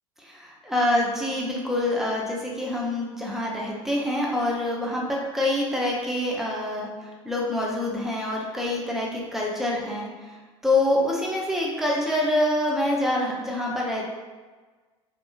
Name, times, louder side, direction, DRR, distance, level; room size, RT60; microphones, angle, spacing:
voice 1, 0.2-10.4 10.6-14.0, left 1 dB, ahead, -3 dB, 0.6 m, -26 dB
2.6 x 2.5 x 2.3 m, 1.3 s
figure-of-eight pair, 70°, 18 cm